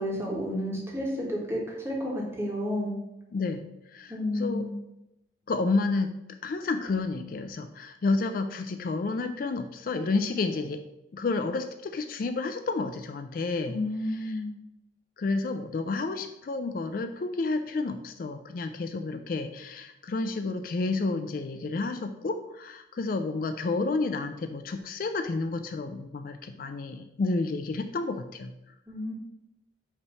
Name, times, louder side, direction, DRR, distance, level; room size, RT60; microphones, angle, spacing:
voice 1, 0.0-2.9 4.1-4.7 13.7-14.5 28.9-29.1, left 1 dB, 15° right, -3 dB, 1.5 m, -31 dB
voice 2, 3.3-3.6 3.9-4.7 5.5-6.1 6.4-10.8 11.1-13.8 14.0-14.4 15.2-28.5, left 3 dB, 50° left, 7 dB, 0.3 m, -30 dB
5.8 x 3.1 x 5.5 m, 0.90 s
head